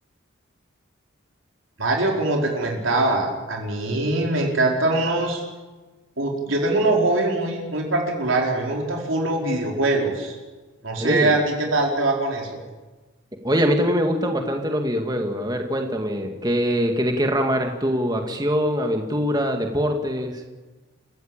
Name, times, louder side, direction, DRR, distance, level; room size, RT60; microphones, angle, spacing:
voice 1, 1.8-5.4 6.2-10.3 10.8-12.6, right 2 dB, 75° right, 0 dB, 4.5 m, -22 dB
voice 2, 11.0-11.3 13.4-20.4, equal, 20° right, 3 dB, 2.1 m, -23 dB
30.0 x 15.5 x 8.9 m, 1.2 s
head